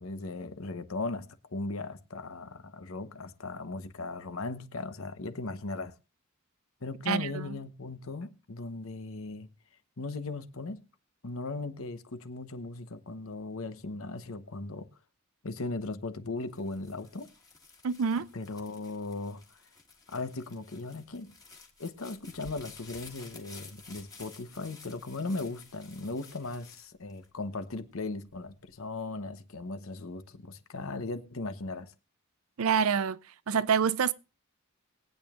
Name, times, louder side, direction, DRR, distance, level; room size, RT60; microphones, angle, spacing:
voice 1, 0.0-5.9 6.8-9.5 10.0-10.8 11.2-14.9 15.4-17.3 18.3-19.4 20.1-21.3 21.8-31.9, left 3 dB, 65° left, 1.0 m, -38 dB
voice 2, 7.1-7.6 17.8-18.3 32.6-33.2 33.5-34.1, right 6 dB, 70° right, 0.5 m, -27 dB
sound 1, 16.4-27.8 28.3-28.9, left 4 dB, 15° left, 1.8 m, -53 dB
21.5 x 8.8 x 2.4 m
head